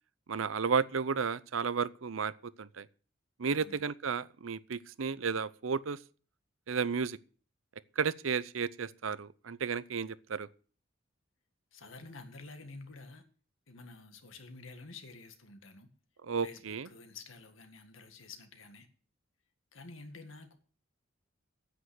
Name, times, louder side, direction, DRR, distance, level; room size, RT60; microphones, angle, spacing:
voice 1, 0.3-2.9 3.4-6.0 6.7-7.2 8.0-10.5 16.2-16.9, right 5 dB, 85° right, 0.6 m, -33 dB
voice 2, 11.7-13.2 13.7-15.9 16.4-16.6 16.9-18.9 19.7-20.6, left 3 dB, 80° left, 1.9 m, -49 dB
9.8 x 8.8 x 7.9 m
head